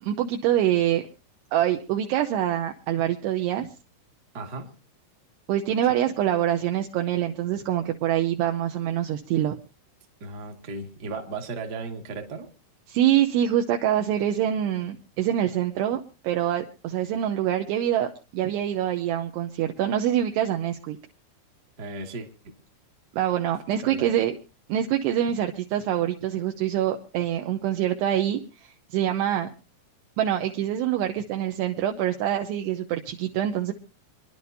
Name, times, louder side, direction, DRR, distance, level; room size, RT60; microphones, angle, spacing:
voice 1, 0.0-1.1 1.5-3.7 5.5-9.6 12.9-21.0 23.1-24.3 24.7-29.5 30.2-33.7, right 11 dB, 75° right, 4 dB, 2.7 m, -25 dB
voice 2, 4.3-4.7 10.2-12.5 21.8-22.5 23.8-24.2, right 3 dB, 45° right, 2 dB, 1.3 m, -36 dB
27.5 x 11.0 x 2.7 m, 0.32 s
omnidirectional pair, 5.3 m